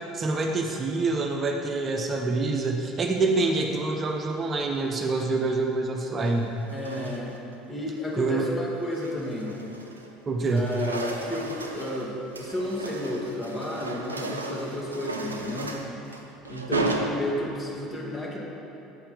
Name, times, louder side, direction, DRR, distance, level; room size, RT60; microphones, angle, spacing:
voice 1, 0.1-6.5 8.2-8.5 10.3-10.7, right 3 dB, 35° right, 2 dB, 0.8 m, -26 dB
sound 1, 4.4-4.9 6.0-7.5 8.0-8.3 8.7-10.2 10.4-17.8, right 2 dB, 90° right, 0.5 m, -35 dB
voice 2, 6.7-7.3 7.7-9.5 10.5-15.8 16.5-18.4, left 1 dB, 30° left, -2 dB, 2.0 m, -32 dB
7.6 x 5.7 x 6.9 m, 2.9 s
figure-of-eight pair, 65°, 0 cm